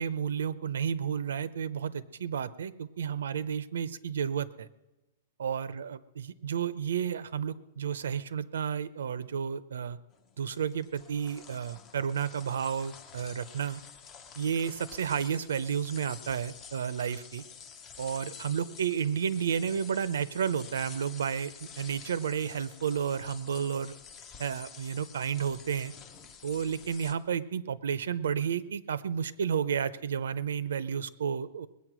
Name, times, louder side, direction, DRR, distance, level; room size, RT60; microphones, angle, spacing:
voice 1, 0.0-4.7 5.4-10.0 10.4-13.8 14.4-17.4 18.0-23.9 24.4-25.9 26.4-31.7, right 7 dB, 90° right, 17 dB, 0.7 m, -32 dB
sound 1, 10.1-27.1, left 6 dB, 15° left, 0.6 m, -49 dB
20.5 x 8.5 x 6.2 m, 1.1 s
hypercardioid pair, 180°, 0 cm